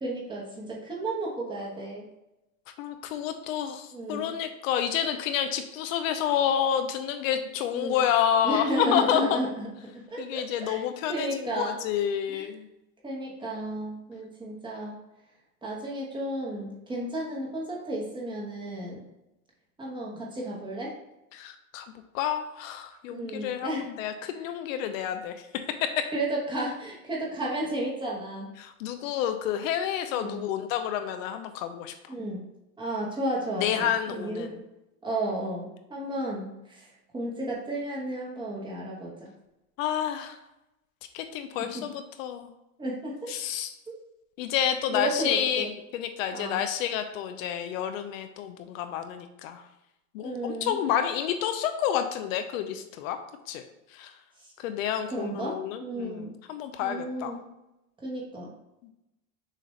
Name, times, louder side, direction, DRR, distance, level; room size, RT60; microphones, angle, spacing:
voice 1, 0.0-2.1 3.9-4.3 7.7-8.0 8.4-10.8 11.1-11.8 12.3-12.5 13.0-15.0 15.6-19.0 19.8-20.9 23.1-23.9 26.1-28.5 30.1-30.4 32.1-32.4 32.8-34.6 35.0-36.9 37.1-39.3 41.6-41.9 42.8-43.3 44.9-45.7 46.3-46.6 50.2-50.8 54.4-54.5 55.1-56.3 56.8-57.4 58.0-58.5, right 1 dB, 10° right, -4 dB, 1.0 m, -33 dB
voice 2, 2.8-9.4 10.2-12.7 21.3-21.9 22.1-25.5 25.8-26.0 28.6-31.9 33.6-34.5 39.8-40.4 41.1-42.5 43.3-43.7 44.4-45.7 45.9-49.6 50.1-53.2 53.5-53.6 53.9-54.2 54.6-57.3 58.8-58.9, left 9 dB, 70° left, 8 dB, 0.6 m, -29 dB
6.5 x 2.5 x 3.2 m, 0.91 s
supercardioid pair, 135°, 42 cm